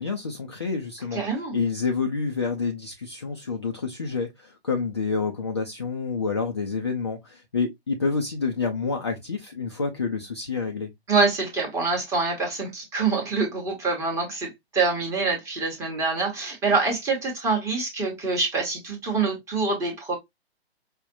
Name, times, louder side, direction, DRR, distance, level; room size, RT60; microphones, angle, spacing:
voice 1, 0.0-10.9, left 4 dB, 25° left, 0.3 m, -28 dB
voice 2, 1.1-1.6 11.1-20.2, right 4 dB, 10° right, 0.8 m, -25 dB
4.9 x 2.1 x 2.5 m
figure-of-eight pair, 130°, 32 cm